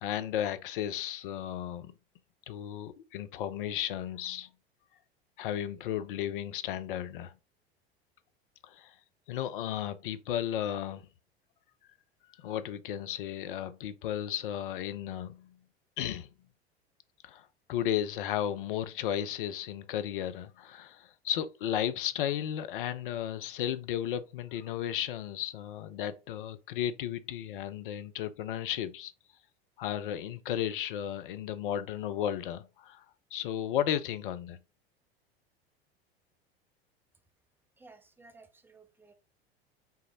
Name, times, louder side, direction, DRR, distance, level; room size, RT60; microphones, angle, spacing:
voice 1, 0.0-1.9 2.5-4.5 5.4-7.3 8.6-8.9 9.3-11.1 12.4-15.6 16.0-16.3 17.2-29.1 29.8-33.0 33.3-34.6, left 10 dB, 55° left, 0.5 m, -34 dB
voice 2, 37.8-39.1, right 3 dB, 5° right, 0.5 m, -56 dB
5.7 x 2.1 x 3.9 m
figure-of-eight pair, 80°, 31 cm